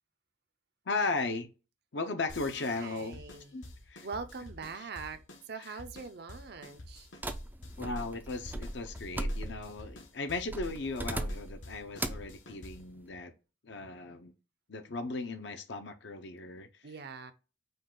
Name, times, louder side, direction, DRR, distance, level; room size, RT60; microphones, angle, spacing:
voice 1, 0.9-1.5 1.9-3.2 3.5-3.6 3.9-4.1 4.8-4.9 5.6-5.7 7.8-13.3 13.6-14.3 14.7-16.7, left 3 dB, 65° left, 0.7 m, -36 dB
sound 1, 2.3-13.0, left 1 dB, 85° left, 1.0 m, -50 dB
voice 2, 2.7-3.5 4.0-7.1 16.8-17.3, right 5 dB, 60° right, 0.5 m, -43 dB
sound 2, 7.2-9.8 10.5-11.6 12.0-12.3, right 1 dB, 10° right, 0.3 m, -37 dB
5.3 x 2.4 x 3.7 m
head